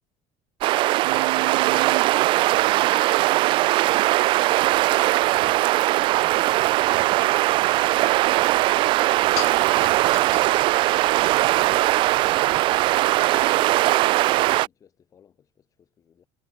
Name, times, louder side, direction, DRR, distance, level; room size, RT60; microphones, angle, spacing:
sound 1, 0.6-14.7, right 17 dB, 35° right, 0.3 m, -20 dB
voice 1, 1.0-3.7, right 37 dB, 70° right, 1.3 m, -35 dB
voice 2, 3.3-16.3, left 8 dB, 25° left, 6.2 m, -56 dB
sound 2, 7.8-13.3, left 32 dB, 75° left, 0.7 m, -42 dB
cardioid pair, 180°, 14 cm